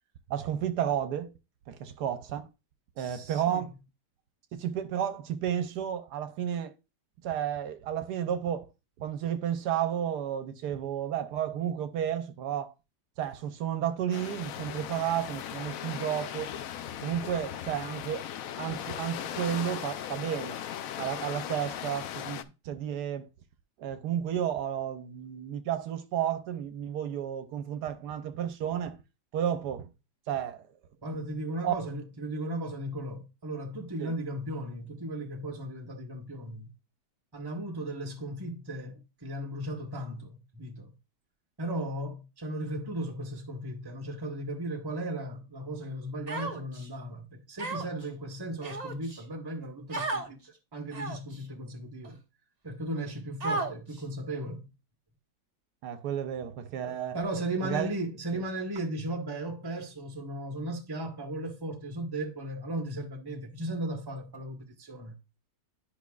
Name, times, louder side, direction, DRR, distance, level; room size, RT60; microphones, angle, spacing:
voice 1, 0.3-1.3 1.7-2.5 3.0-3.7 4.5-6.7 7.2-8.7 9.0-12.7 13.2-16.5 17.0-18.2 18.6-20.6 21.0-23.3 23.8-29.0 29.3-29.9 30.3-30.6 31.6-31.7 34.0-34.1 55.8-57.2 57.6-57.9, right 10 dB, 80° right, 1.2 m, -32 dB
voice 2, 3.0-3.6 31.0-36.7 37.3-40.9 41.6-52.2 52.6-54.7 56.9-65.2, right 1 dB, 15° right, 1.2 m, -36 dB
sound 1, 14.1-22.4, left 10 dB, 70° left, 0.9 m, -38 dB
Human voice, 46.3-46.9 47.6-48.0 48.6-49.2 49.9-50.3 50.9-51.3 52.0-52.1 53.4-54.0, right 3 dB, 30° right, 0.9 m, -33 dB
10.5 x 5.4 x 2.4 m
omnidirectional pair, 1.8 m